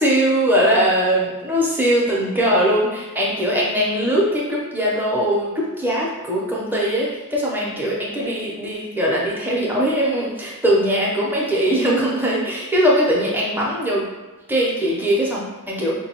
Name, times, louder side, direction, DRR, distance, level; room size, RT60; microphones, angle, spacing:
voice 1, 0.0-14.0 14.5-15.9, equal, 10° right, -5 dB, 0.6 m, -20 dB
4.6 x 2.2 x 2.8 m, 1.2 s
head